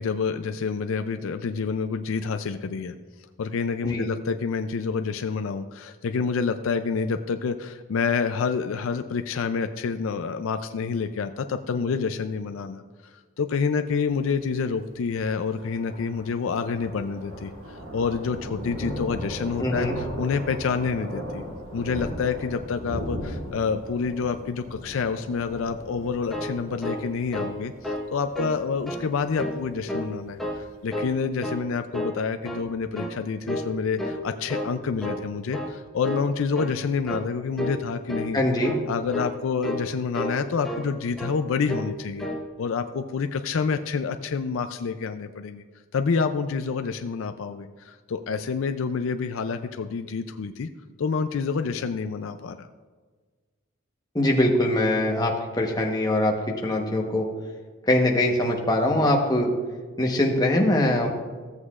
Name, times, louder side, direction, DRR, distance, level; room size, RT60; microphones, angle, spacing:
voice 1, 0.0-3.0 3.4-21.4 21.7-38.4 38.9-42.3 42.6-45.6 45.9-50.7 51.0-52.7, left 5 dB, 70° left, 8 dB, 0.4 m, -28 dB
Thunder, 14.0-30.9, equal, 70° right, 1.9 m, -38 dB
voice 2, 19.6-19.9 38.3-38.7 54.1-56.3 56.6-57.3 57.9-59.5 60.0-61.1, left 1 dB, 20° left, 0 dB, 1.0 m, -22 dB
sound 1, 26.1-27.6 27.8-28.1 28.3-29.0 29.4-30.1 30.4-31.1 31.4-31.7 31.9-32.7 33.0-33.2 33.5-33.7 34.0-34.7 35.0-35.2 35.5-35.8 36.0-36.3 36.5-36.8 37.1-37.3 37.6-37.8 38.1-38.3 38.6-38.8 39.1-39.4 39.6-39.9 40.1-40.9 41.2-41.4 41.7-41.9 42.2-42.4, left 1 dB, ahead, 0.7 m, -31 dB
15.0 x 8.0 x 2.4 m, 1.4 s
head